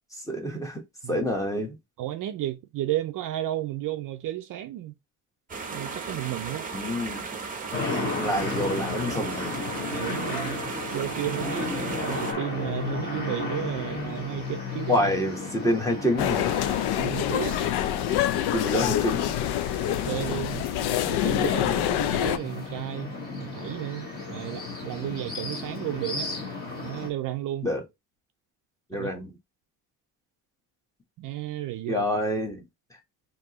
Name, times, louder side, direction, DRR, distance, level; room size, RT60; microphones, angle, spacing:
voice 1, 0.3-0.8 1.1-1.8 6.7-7.2 8.2-9.6 14.9-16.5 18.3-19.3 21.3-21.9 27.6-27.8 28.9-29.3 31.9-32.6, equal, 10° left, 1.0 m, -27 dB
voice 2, 2.0-4.9 5.7-6.7 9.9-10.6 10.9-14.9 17.0-17.6 19.9-20.7 21.0-26.3 26.8-27.7 28.9-29.1 31.2-32.1, right 14 dB, 55° right, 0.5 m, -33 dB
sound 1, 5.5-12.3, right 5 dB, 20° right, 0.7 m, -36 dB
sound 2, 7.7-27.1, left 3 dB, 25° left, 1.4 m, -34 dB
sound 3, 16.2-22.4, left 12 dB, 70° left, 0.5 m, -26 dB
4.5 x 2.8 x 2.9 m
cardioid pair, 140°, 40 cm